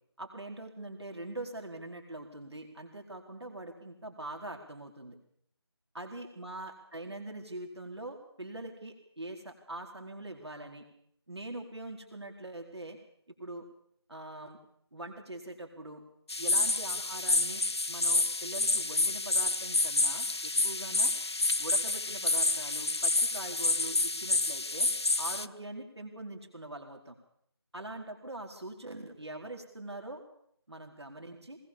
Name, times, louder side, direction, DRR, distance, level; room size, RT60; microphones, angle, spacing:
voice 1, 0.2-5.2 5.9-10.8 11.3-13.0 13.4-13.6 14.1-14.6 14.9-16.0 16.4-21.1 21.6-24.9 25.2-27.2 27.7-30.2 30.7-31.6, right 2 dB, 75° right, 2 dB, 4.5 m, -43 dB
sound 1, 16.3-25.5, left 2 dB, 70° left, 0.9 m, -29 dB
20.0 x 20.0 x 7.2 m, 0.69 s
figure-of-eight pair, 170°, 14 cm